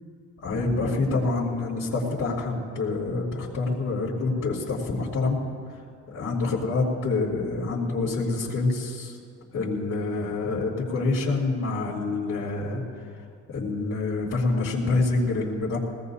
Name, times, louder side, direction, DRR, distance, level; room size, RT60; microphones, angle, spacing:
voice 1, 0.4-5.4 6.1-9.2 9.5-12.8 13.5-15.8, left 3 dB, 75° left, -9 dB, 3.1 m, -26 dB
21.0 x 18.0 x 2.8 m, 2.2 s
cardioid pair, 90°, 30 cm